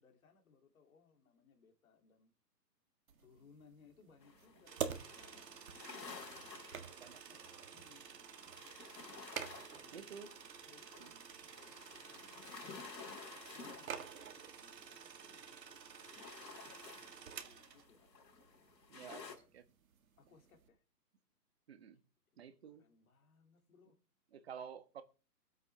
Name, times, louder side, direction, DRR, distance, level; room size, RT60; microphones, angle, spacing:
voice 1, 0.0-2.3 3.2-7.4 7.7-8.1 9.4-10.1 10.6-11.6 11.9-12.8 13.5-18.8 20.2-20.8 22.6-24.0, left 5 dB, 55° left, 2.7 m, -67 dB
sound 1, 3.1-20.7, right 7 dB, 55° right, 1.7 m, -51 dB
sound 2, 4.2-15.4 15.8-19.4, left 5 dB, 85° left, 3.9 m, -54 dB
sound 3, 4.7-17.9, right 7 dB, 80° right, 1.6 m, -54 dB
voice 2, 7.0-7.4 9.9-10.3 11.0-11.1 18.9-19.3 19.5-19.6 21.7-22.0 22.4-22.8 24.3-25.0, right 7 dB, 40° right, 1.3 m, -51 dB
22.0 x 8.1 x 3.3 m
hypercardioid pair, 165°, 49 cm